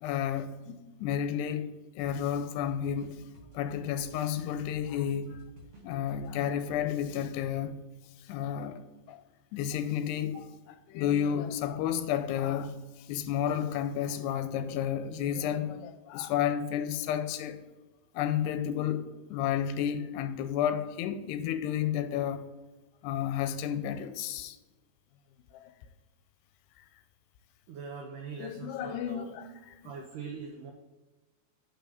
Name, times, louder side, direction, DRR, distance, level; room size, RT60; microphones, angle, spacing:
voice 1, 0.0-3.2 3.5-5.4 5.8-7.7 8.2-8.8 9.1-9.2 9.5-10.4 10.9-17.6 18.1-22.5 23.0-24.6 25.5-25.7 28.4-29.5 29.8-29.9, left 9 dB, 85° left, 2.6 m, -31 dB
sound 1, 2.0-7.2, right 1 dB, 40° right, 2.8 m, -53 dB
voice 2, 27.7-29.4 29.8-30.7, right 5 dB, 80° right, 1.8 m, -42 dB
10.5 x 5.1 x 4.8 m
omnidirectional pair, 4.8 m